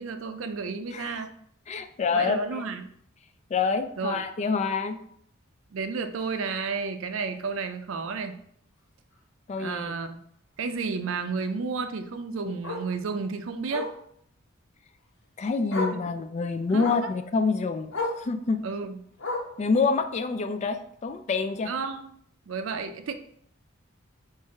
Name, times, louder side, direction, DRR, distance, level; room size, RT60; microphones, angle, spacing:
voice 1, 0.0-1.3 2.1-2.9 4.0-4.2 5.7-8.4 9.6-10.2 10.6-13.9 15.9-16.0 16.7-16.9 18.6-19.0 21.7-22.1 22.5-23.1, right 4 dB, 80° right, 8 dB, 0.5 m, -32 dB
voice 2, 0.9-1.2 1.7-2.7 3.5-5.0 9.5-9.9 15.4-17.9 18.2-18.6 19.6-21.7, left 4 dB, 35° left, 9 dB, 0.3 m, -27 dB
Bark, 6.2-6.4 6.8-6.9 7.2-7.3 7.6-7.7 9.1-9.2 11.7-11.8 12.6-12.9 13.7-14.0 15.2-15.3 15.7-16.0 16.8-17.1 17.9-18.2 19.2-19.6 20.6-20.7, left 2 dB, 75° left, 1.1 m, -32 dB
4.6 x 2.4 x 4.2 m, 0.67 s
head